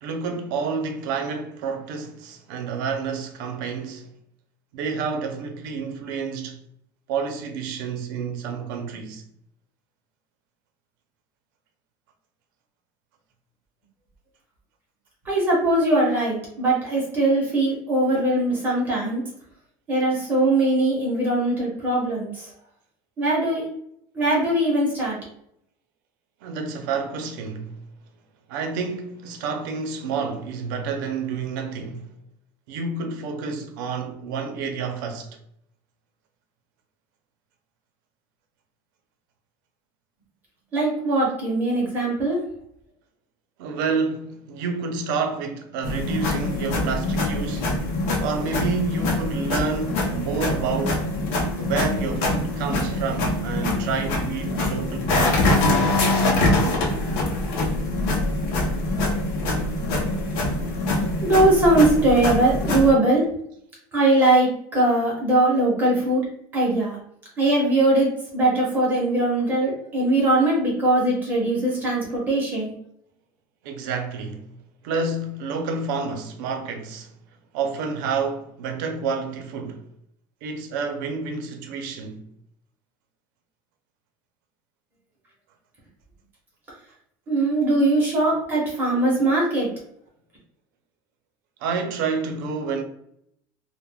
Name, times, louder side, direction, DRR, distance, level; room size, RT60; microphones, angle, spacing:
voice 1, 0.0-4.1 4.7-6.6 7.1-9.2 26.4-27.8 28.5-32.1 32.7-35.4 43.6-47.8 48.2-51.1 51.6-55.6 73.6-74.5 74.8-77.1 77.5-79.8 80.4-82.3 91.6-92.8, right 5 dB, 80° right, 0.5 m, -29 dB
voice 2, 15.2-19.2 19.9-22.5 23.2-23.6 24.1-25.2 40.7-42.4 61.2-63.3 63.9-66.2 66.5-67.0 67.4-72.7 87.3-89.7, right 2 dB, 20° right, 0.6 m, -21 dB
sound 1, 45.8-62.9, left 2 dB, 65° left, 0.6 m, -24 dB
2.2 x 2.0 x 3.3 m
cardioid pair, 180°, 11 cm